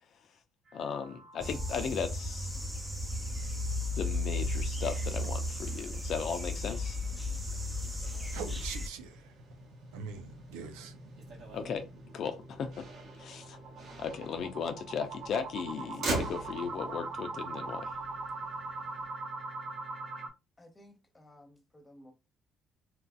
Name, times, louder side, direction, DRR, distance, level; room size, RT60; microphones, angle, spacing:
voice 1, 0.7-2.5 4.0-7.0 11.5-11.9 12.1-12.9 13.2-13.6 14.0-17.9, left 6 dB, 65° left, 0.5 m, -36 dB
sound 1, 0.7-2.2 2.6-2.7 3.0-3.1 3.6-3.7 8.5-20.3, right 3 dB, 50° right, 0.7 m, -43 dB
sound 2, 1.4-8.9, left 1 dB, 15° right, 0.8 m, -34 dB
Motor vehicle (road), 3.2-19.1, right 3 dB, 70° right, 1.2 m, -45 dB
voice 2, 8.3-9.4 9.9-11.0, right 6 dB, 85° right, 0.4 m, -43 dB
voice 3, 20.6-22.1, left 1 dB, 20° left, 1.1 m, -56 dB
2.9 x 2.5 x 2.3 m
supercardioid pair, 65°, 0 cm